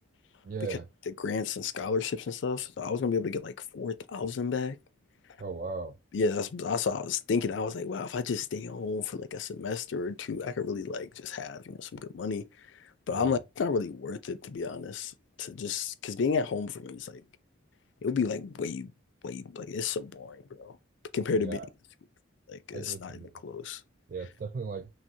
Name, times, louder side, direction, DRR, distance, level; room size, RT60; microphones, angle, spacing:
voice 1, 0.4-0.9 5.4-6.0 13.1-13.4 21.4-21.7 22.7-23.3 24.1-24.9, right 4 dB, 45° right, 0.3 m, -37 dB
voice 2, 1.2-4.8 6.1-12.5 13.1-17.2 18.0-18.9 19.2-20.8 21.1-21.6 22.5-23.8, left 5 dB, 70° left, 0.4 m, -32 dB
6.0 x 2.0 x 2.7 m
head